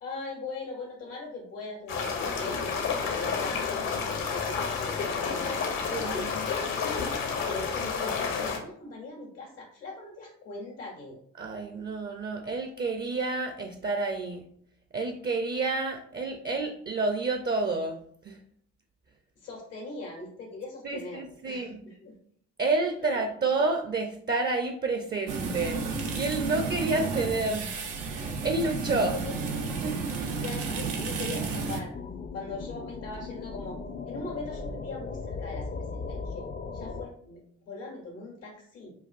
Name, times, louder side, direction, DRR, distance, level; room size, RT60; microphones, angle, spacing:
voice 1, 0.0-2.9 3.1-6.7 7.4-11.2 19.4-22.1 28.9-29.8 30.4-32.0 32.3-33.8 34.0-36.5 36.7-38.9, left 3 dB, 85° left, -3 dB, 1.3 m, -40 dB
sound 1, 1.9-8.6, left 5 dB, 65° left, 0.9 m, -30 dB
voice 2, 5.9-6.3 11.4-14.5 14.9-18.0 18.2-18.4 20.8-21.8 22.6-25.8 26.1-29.2 29.8-30.4, right 3 dB, 30° right, 5 dB, 0.5 m, -29 dB
sound 2, 25.3-31.8, right 4 dB, 85° right, 0.5 m, -32 dB
sound 3, 31.9-37.1, left 4 dB, 30° left, 0.4 m, -37 dB
5.3 x 2.4 x 2.4 m, 0.64 s
hypercardioid pair, 45°, 36 cm